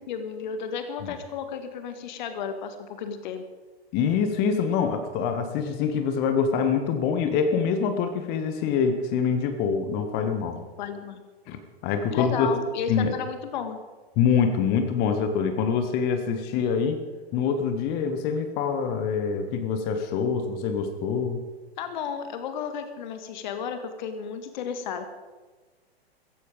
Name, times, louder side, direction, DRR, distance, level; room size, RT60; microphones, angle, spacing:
voice 1, 0.1-3.4 10.5-11.2 12.1-13.8 21.8-25.1, left 6 dB, 45° left, 9 dB, 1.6 m, -33 dB
voice 2, 3.9-10.6 11.5-12.5 12.9-13.1 14.2-17.0 17.3-21.4, left 6 dB, 30° left, 8 dB, 1.5 m, -25 dB
15.5 x 15.0 x 5.2 m, 1.3 s
figure-of-eight pair, 105°, 32 cm